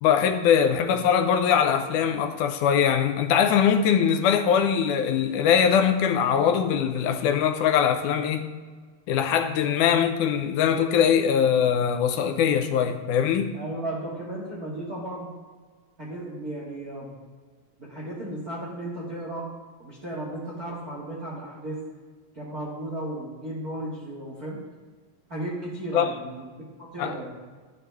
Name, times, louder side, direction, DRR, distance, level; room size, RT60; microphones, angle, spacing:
voice 1, 0.0-8.5 9.1-13.5 25.9-26.1 27.0-27.1, left 8 dB, 80° left, 7 dB, 2.0 m, -22 dB
voice 2, 13.5-15.3 16.0-17.1 17.8-19.5 19.8-21.8 22.3-24.6 25.3-26.5 26.8-27.3, right 1 dB, 30° right, -5 dB, 1.9 m, -34 dB
12.5 x 9.7 x 3.4 m, 1.4 s
omnidirectional pair, 3.9 m